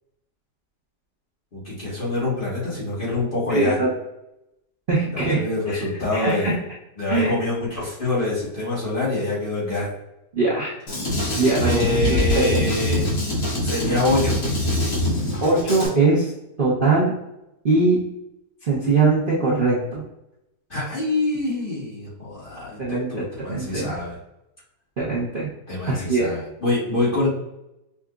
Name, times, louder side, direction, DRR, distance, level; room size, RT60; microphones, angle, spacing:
voice 1, 1.5-3.8 5.1-6.6 7.0-9.9 11.6-13.0 13.6-14.6 20.7-24.1 25.7-27.3, left 2 dB, 30° left, -8 dB, 1.4 m, -25 dB
voice 2, 3.5-3.9 4.9-5.8 6.1-6.5 7.1-7.3 10.3-10.7 11.4-11.8 12.1-12.6 15.4-16.3 16.6-17.1 17.6-18.0 18.7-20.0 22.8-23.9 25.0-25.5 25.9-26.3, right 3 dB, 40° right, -8 dB, 0.8 m, -21 dB
Drum kit, 10.9-15.9, left 1 dB, 55° left, 1.6 m, -23 dB
5.7 x 2.5 x 2.3 m, 0.87 s
omnidirectional pair, 1.9 m